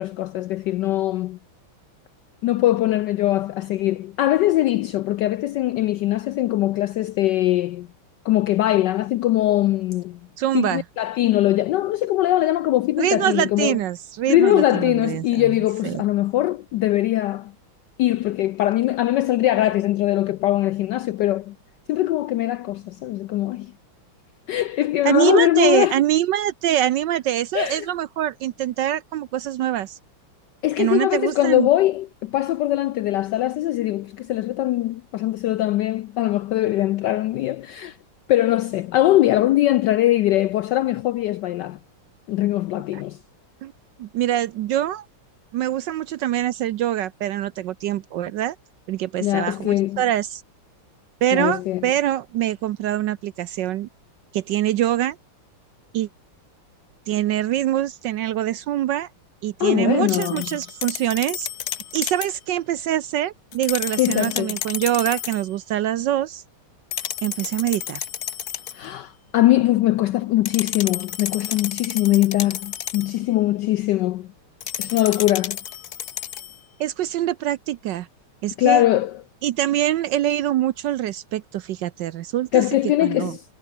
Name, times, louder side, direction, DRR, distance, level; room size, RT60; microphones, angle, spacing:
voice 1, 0.0-1.4 2.4-7.9 8.2-10.2 10.5-13.8 14.3-17.5 18.0-21.5 21.9-23.7 24.5-25.9 27.5-27.9 30.6-38.0 38.3-41.8 42.3-43.2 49.2-50.0 51.3-51.8 59.6-60.5 64.0-64.6 68.7-74.3 74.8-75.6 78.6-79.2 82.5-83.4, left 14 dB, 80° left, 1.0 m, -21 dB
voice 2, 10.4-10.8 13.0-15.6 15.8-16.0 25.0-30.0 30.8-31.7 42.9-43.0 43.6-43.7 44.0-45.1 45.5-48.6 48.9-50.4 51.2-53.9 54.3-55.2 55.9-56.1 57.1-59.1 59.4-61.5 61.9-66.4 67.2-68.1 76.8-78.1 78.4-78.8 79.4-82.6 83.0-83.4, right 12 dB, 70° right, 1.1 m, -24 dB
sound 1, 60.1-62.4 63.5-65.5 66.9-68.9 70.5-73.2 74.6-76.6, left 10 dB, 55° left, 1.3 m, -31 dB
omnidirectional pair, 2.4 m